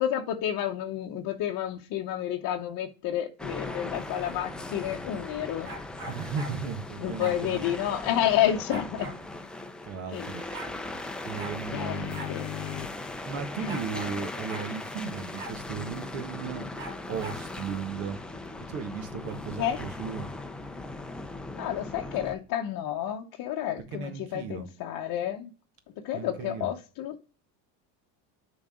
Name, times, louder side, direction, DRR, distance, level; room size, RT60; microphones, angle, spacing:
voice 1, 0.0-5.7 7.0-9.1 10.1-10.3 11.7-12.0 12.3-12.4 19.6-19.8 21.5-25.5 26.0-27.2, left 11 dB, 45° left, 0.8 m, -30 dB
sound 1, 3.4-22.3, left 2 dB, ahead, 0.4 m, -39 dB
sound 2, 5.6-6.6 7.2-7.4 8.7-9.2 10.1-10.2 10.3-10.7 11.4-11.6 12.1-12.3 12.6-12.7 13.7-14.2 14.5-14.7 15.4-15.6 16.8-17.4, right 2 dB, 45° right, 2.2 m, -41 dB
voice 2, 6.1-7.6 9.8-10.4 11.2-12.3 13.2-16.7 17.1-18.2 18.7-20.3 23.9-24.7 26.1-26.7, right 6 dB, 70° right, 1.7 m, -36 dB
sound 3, 8.7-8.9 11.3-13.1 13.6-16.9, left 11 dB, 75° left, 0.7 m, -41 dB
7.2 x 4.0 x 5.0 m
cardioid pair, 135°, 47 cm